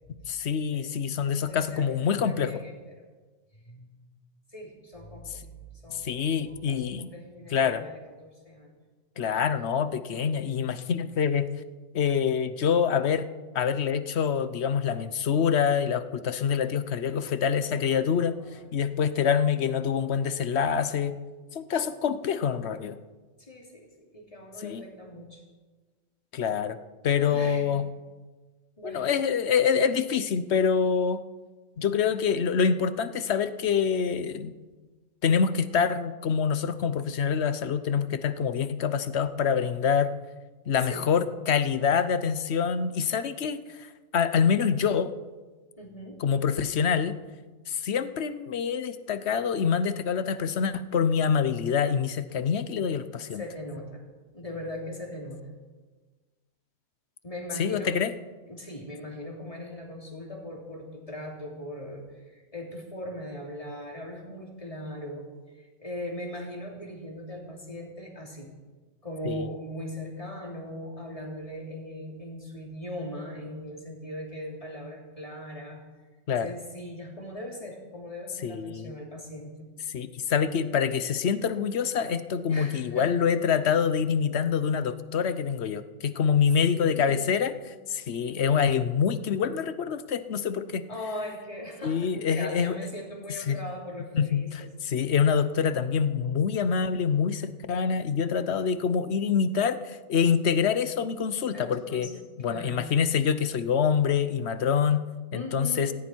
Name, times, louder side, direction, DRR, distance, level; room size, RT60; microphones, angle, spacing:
voice 1, 0.3-2.6 5.9-7.1 7.5-7.8 9.2-11.5 11.9-13.3 13.5-18.4 18.7-21.1 21.5-23.0 24.6-24.8 26.3-26.8 27.0-27.8 28.8-31.2 31.8-34.5 35.2-40.1 40.7-43.9 44.1-45.1 46.2-47.2 47.7-53.4 57.6-58.1 69.2-69.5 76.3-76.5 78.4-78.9 79.9-87.5 87.9-90.8 91.8-92.7 93.5-93.6 94.1-102.1 102.4-105.0 105.3-105.9, left 7 dB, 60° left, 13 dB, 1.0 m, -26 dB
voice 2, 1.4-3.1 3.5-3.9 4.5-8.7 9.1-9.5 18.2-18.6 23.4-25.4 27.2-27.8 28.8-29.0 40.8-41.1 45.8-46.2 53.3-54.0 54.3-55.5 57.2-57.9 58.5-65.3 65.5-68.5 69.0-75.8 76.4-79.7 82.5-83.1 86.7-87.5 90.9-94.5 101.5-102.1 102.4-102.9 105.3-105.9, left 1 dB, 25° left, -1 dB, 3.1 m, -40 dB
18.0 x 15.0 x 4.5 m, 1.3 s
omnidirectional pair, 1.4 m